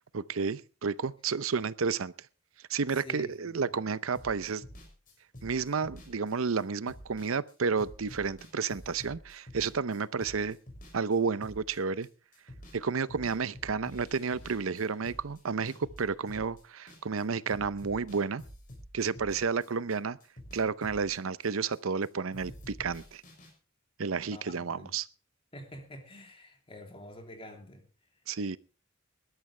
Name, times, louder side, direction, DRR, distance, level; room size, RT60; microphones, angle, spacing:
voice 1, 0.1-2.1 2.7-4.6 5.4-10.6 10.9-12.1 12.7-18.4 18.9-20.2 20.5-23.2 24.0-25.1 28.3-28.6, right 5 dB, 90° right, 0.7 m, -31 dB
voice 2, 3.0-3.6 24.3-24.9 25.5-27.8, left 1 dB, 30° left, 3.3 m, -47 dB
sound 1, 4.1-12.1 12.3-12.8 13.1-17.2 17.5-20.0 20.2-22.1 22.3-23.5, equal, 45° left, 6.6 m, -49 dB
20.5 x 12.5 x 3.3 m
head